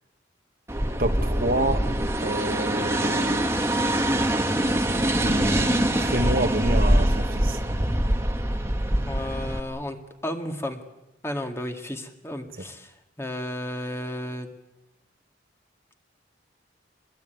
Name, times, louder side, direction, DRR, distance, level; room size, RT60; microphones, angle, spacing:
sound 1, 0.7-9.6, right 1 dB, 15° right, 1.6 m, -24 dB
voice 1, 1.0-1.8 2.2-3.4 4.9-7.6, right 1 dB, 50° right, 7 dB, 1.6 m, -28 dB
voice 2, 9.0-10.8 11.2-14.5, left 1 dB, 15° left, 4 dB, 2.1 m, -33 dB
25.5 x 21.0 x 9.3 m, 0.95 s
head